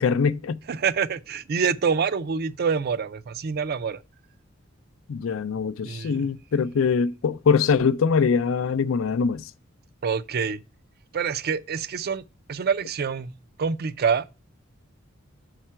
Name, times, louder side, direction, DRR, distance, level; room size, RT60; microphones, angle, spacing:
voice 1, 0.0-0.6 5.1-9.5, left 5 dB, 70° left, 0.4 m, -23 dB
voice 2, 0.7-4.0 5.8-6.3 10.0-10.6 11.1-12.2 12.5-13.3 13.6-14.2, right 6 dB, 50° right, 0.4 m, -26 dB
6.5 x 4.8 x 4.3 m
head